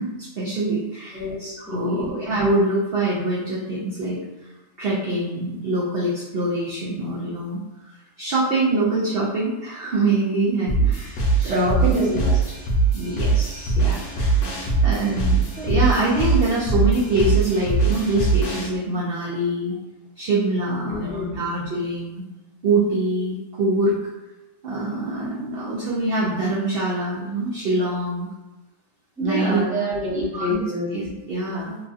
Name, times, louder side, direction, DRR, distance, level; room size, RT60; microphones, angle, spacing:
voice 1, 0.0-4.2 4.8-11.2 11.4-11.9 12.9-14.4 14.8-19.8 20.2-22.2 22.6-24.0 24.6-28.3 29.2-29.6 30.1-30.6 30.9-31.8, right 2 dB, 75° right, -5 dB, 0.5 m, -24 dB
voice 2, 1.7-2.1 11.4-12.4 20.9-21.4 29.2-30.9, equal, 10° right, -7 dB, 0.5 m, -26 dB
sound 1, 10.7-18.7, right 4 dB, 60° left, 0.9 m, -22 dB
3.0 x 2.3 x 2.6 m, 1.1 s
omnidirectional pair, 1.6 m